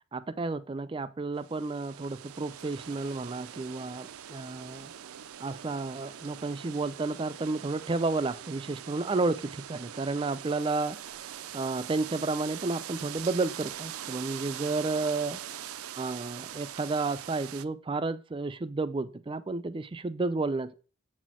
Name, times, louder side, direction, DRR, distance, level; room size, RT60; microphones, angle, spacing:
voice 1, 0.1-4.9 5.4-15.4 16.0-20.7, right 3 dB, 25° right, 0.4 m, -32 dB
sound 1, 1.4-17.6, right 10 dB, 85° right, 0.4 m, -43 dB
7.4 x 4.1 x 6.1 m
head